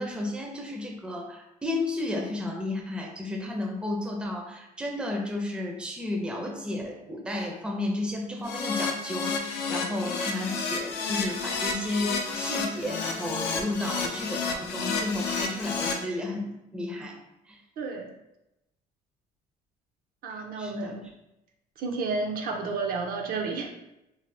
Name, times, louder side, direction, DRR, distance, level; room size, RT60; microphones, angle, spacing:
voice 1, 0.0-17.2 17.5-17.6 20.6-20.9, left 1 dB, 5° right, 0 dB, 0.4 m, -32 dB
Keyboard (musical), 8.4-15.9, left 4 dB, 80° left, 0.5 m, -31 dB
voice 2, 17.8-18.1 20.2-21.0 21.8-23.7, right 4 dB, 60° right, 2 dB, 0.5 m, -31 dB
2.6 x 2.0 x 3.1 m, 0.87 s
cardioid pair, 110°, 17 cm